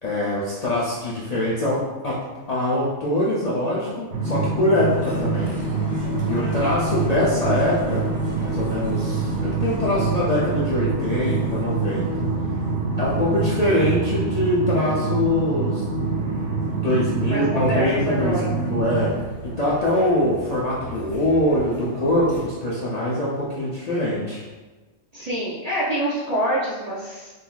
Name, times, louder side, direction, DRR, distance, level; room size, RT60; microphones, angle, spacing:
voice 1, 0.0-2.2 2.5-5.5 6.3-8.1 8.4-12.3 13.0-15.8 16.7-19.1 19.4-24.4, left 1 dB, 55° left, -7 dB, 0.4 m, -23 dB
sound 1, 4.1-19.1, right 3 dB, 75° right, 0.9 m, -25 dB
sound 2, 4.9-22.4, equal, 10° right, 0.7 m, -39 dB
voice 2, 6.3-6.8 17.3-18.5 19.9-20.2 25.1-27.3, right 1 dB, 50° right, -7 dB, 0.5 m, -26 dB
3.7 x 2.6 x 2.3 m, 1.3 s
omnidirectional pair, 1.2 m